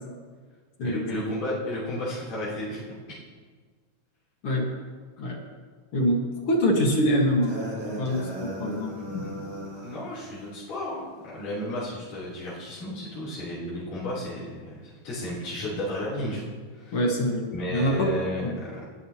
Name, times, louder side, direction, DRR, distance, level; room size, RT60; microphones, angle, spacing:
voice 1, 0.8-2.8 8.9-16.4 16.7-17.0 17.5-18.7, left 1 dB, 75° left, -9 dB, 5.1 m, -33 dB
voice 2, 5.9-7.6 8.0-9.2 16.9-18.1 18.4-18.6, equal, 50° left, 0 dB, 2.2 m, -25 dB
sound 1, 7.4-10.0, equal, 20° right, 4.4 m, -36 dB
20.0 x 11.5 x 2.9 m, 1.5 s
omnidirectional pair, 3.7 m